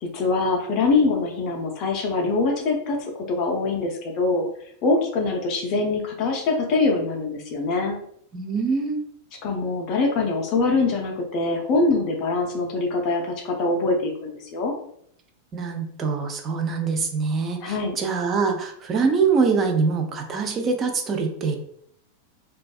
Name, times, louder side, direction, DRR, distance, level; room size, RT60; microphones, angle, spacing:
voice 1, 0.0-4.5 4.8-8.0 9.4-14.7 17.6-18.0, left 3 dB, 35° left, 1 dB, 0.5 m, -23 dB
voice 2, 8.3-9.0 15.5-21.6, right 5 dB, 25° right, 3 dB, 0.5 m, -24 dB
2.6 x 2.2 x 2.3 m, 0.67 s
figure-of-eight pair, 90°, 0 cm